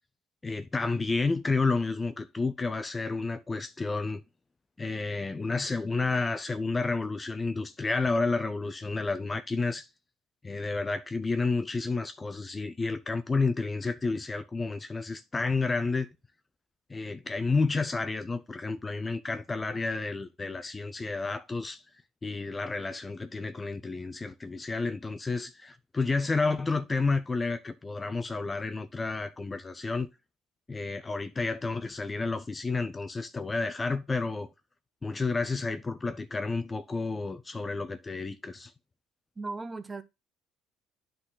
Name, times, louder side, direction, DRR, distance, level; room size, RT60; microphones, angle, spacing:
voice 1, 0.4-4.2 4.8-9.9 10.4-16.1 16.9-21.8 22.2-30.1 30.7-34.5 35.0-38.7, left 3 dB, 20° left, 0.4 m, -30 dB
voice 2, 39.4-40.0, right 3 dB, 20° right, 0.7 m, -37 dB
9.6 x 3.9 x 3.9 m
cardioid pair, 110°, 0 cm